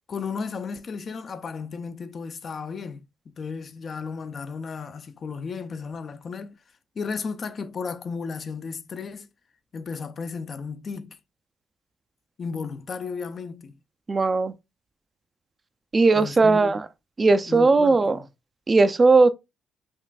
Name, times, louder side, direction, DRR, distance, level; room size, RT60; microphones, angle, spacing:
voice 1, 0.1-6.5 7.0-9.3 9.7-11.2 12.4-13.8 16.1-16.8 17.5-18.3, left 5 dB, 45° left, 0.4 m, -34 dB
voice 2, 14.1-14.5 15.9-16.9 17.2-18.2 18.7-19.3, right 3 dB, 30° right, 0.3 m, -18 dB
5.2 x 2.5 x 2.3 m
cardioid pair, 85°, 0 cm